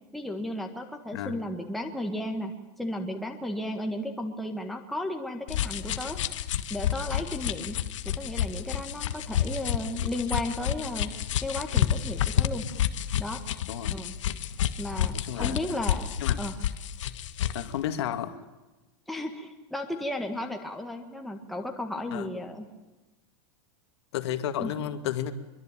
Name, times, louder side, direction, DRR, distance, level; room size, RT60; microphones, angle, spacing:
voice 1, 0.1-6.2 6.7-7.8 8.0-11.1 11.4-12.6 13.2-13.4 13.9-14.1 14.8-16.1 16.4-16.6 19.1-22.7 24.6-24.7, left 1 dB, ahead, 2 dB, 1.6 m, -34 dB
sound 1, 5.5-17.7, left 10 dB, 85° left, 1.5 m, -30 dB
voice 2, 13.6-13.9 15.1-15.6 16.2-16.4 17.5-18.4 22.1-22.3 24.1-25.3, left 11 dB, 60° left, 9 dB, 2.4 m, -32 dB
25.0 x 23.0 x 9.1 m, 1.1 s
supercardioid pair, 175°, 15 cm